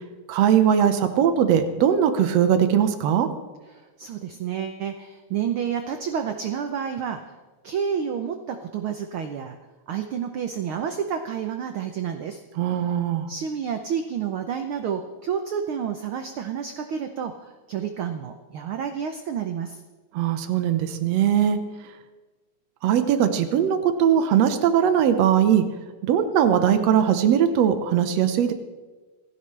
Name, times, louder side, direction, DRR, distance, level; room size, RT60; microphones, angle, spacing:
voice 1, 0.3-3.3 12.6-13.3 20.1-21.6 22.8-25.6 26.1-28.5, right 9 dB, 70° right, 9 dB, 2.0 m, -20 dB
voice 2, 3.7-7.2 7.6-9.6 9.9-12.4 13.3-19.8, right 7 dB, 85° right, 7 dB, 1.1 m, -29 dB
26.5 x 11.5 x 3.3 m, 1.3 s
omnidirectional pair, 3.4 m